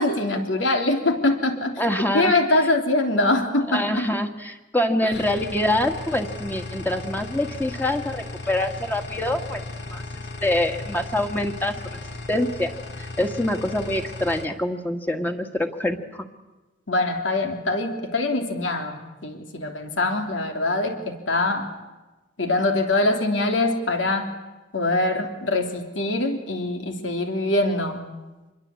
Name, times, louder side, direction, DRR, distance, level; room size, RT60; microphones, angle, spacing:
voice 1, 0.0-1.8 2.1-4.1 5.0-5.1 16.9-21.7 22.4-24.3 24.7-28.0, left 2 dB, 85° left, 5 dB, 3.2 m, -23 dB
voice 2, 1.8-2.3 3.7-9.6 9.9-10.0 10.4-11.8 12.3-12.7 13.0-16.3, left 1 dB, 10° left, 5 dB, 1.8 m, -25 dB
sound 1, 5.1-14.5, left 2 dB, 60° left, 2.2 m, -36 dB
26.5 x 22.0 x 8.5 m, 1.1 s
head